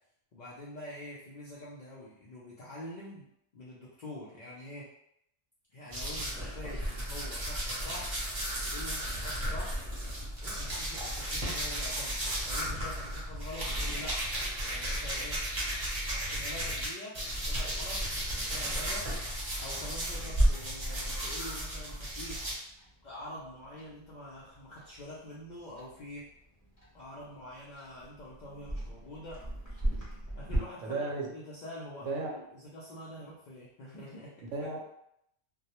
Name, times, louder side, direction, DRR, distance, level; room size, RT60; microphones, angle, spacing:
voice 1, 0.3-3.3 3.5-4.9 5.7-8.2 8.6-9.8 10.4-12.2 12.4-15.4 16.1-19.3 19.6-22.4 23.0-26.3 26.9-29.4 29.7-29.8 30.4-31.1 31.3-34.3, left 1 dB, 70° left, -8 dB, 0.4 m, -46 dB
sound 1, 5.9-16.9 17.1-22.5, equal, 30° right, 0.7 m, -35 dB
Clock, 20.1-30.6, right 1 dB, 15° left, 0.7 m, -36 dB
voice 2, 30.8-31.3 32.0-32.3 34.5-34.8, right 3 dB, 75° right, -1 dB, 0.9 m, -34 dB
2.3 x 2.0 x 2.8 m, 0.76 s
omnidirectional pair, 1.3 m